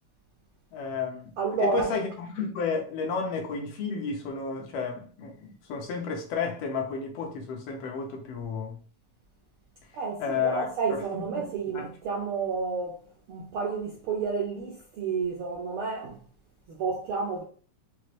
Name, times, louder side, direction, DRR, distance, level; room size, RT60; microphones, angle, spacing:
voice 1, 0.7-1.3 1.6-8.8 10.2-11.9, left 5 dB, 75° left, 1.5 m, -32 dB
voice 2, 1.4-1.9 9.9-13.0 13.3-16.2 16.7-17.4, right 5 dB, 75° right, 1.2 m, -30 dB
5.9 x 2.5 x 3.1 m
omnidirectional pair, 3.6 m